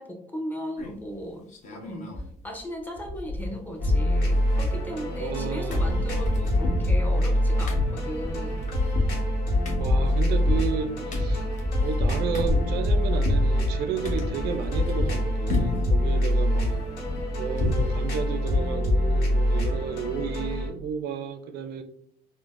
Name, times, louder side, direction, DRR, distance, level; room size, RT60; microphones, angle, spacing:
voice 1, 0.0-8.7, equal, 10° left, 0.6 m, -37 dB
sound 1, 0.8-1.1 1.5-2.3 2.6-2.7 3.0-3.8 4.1-5.4 5.7-13.5 14.0-15.2 15.5-15.9 16.3-17.9 18.2-18.3 18.7-18.9, left 2 dB, 45° left, 0.8 m, -30 dB
sound 2, 3.8-20.7, left 1 dB, 75° left, 1.1 m, -25 dB
voice 2, 5.2-6.1 9.8-11.5 11.8-16.8 17.4-21.8, right 6 dB, 75° right, 0.4 m, -32 dB
3.8 x 2.0 x 2.4 m
cardioid pair, 110°, 17 cm